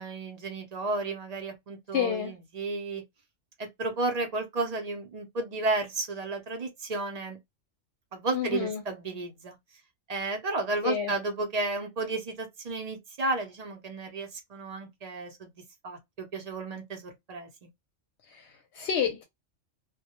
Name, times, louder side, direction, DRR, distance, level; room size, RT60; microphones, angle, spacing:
voice 1, 0.0-3.0 3.6-7.4 8.1-9.6 10.1-15.5 15.8-17.7, right 2 dB, 45° right, 0.6 m, -33 dB
voice 2, 1.9-2.3 8.3-8.8 10.8-11.1 18.3-19.2, left 8 dB, 65° left, 0.8 m, -29 dB
2.2 x 2.0 x 2.8 m
omnidirectional pair, 1.3 m